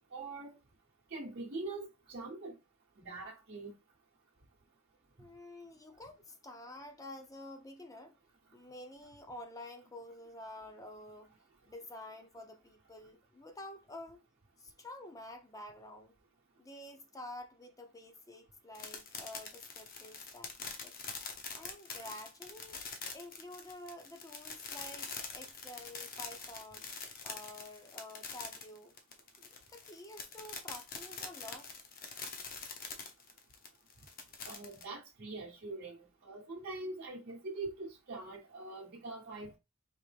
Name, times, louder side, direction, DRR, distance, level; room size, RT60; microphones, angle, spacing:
voice 1, 0.1-0.5 1.1-2.6 3.0-3.7 34.5-39.6, right 2 dB, 50° right, 0.9 m, -43 dB
voice 2, 5.2-8.2 8.5-11.4 11.7-14.2 14.6-16.2 16.6-20.5 20.8-20.9 21.2-22.8 23.1-26.9 27.2-28.9 29.4-31.7, left 1 dB, 15° left, 0.6 m, -49 dB
sound 1, 18.7-34.8, left 5 dB, 45° left, 0.9 m, -44 dB
4.6 x 3.1 x 3.3 m
head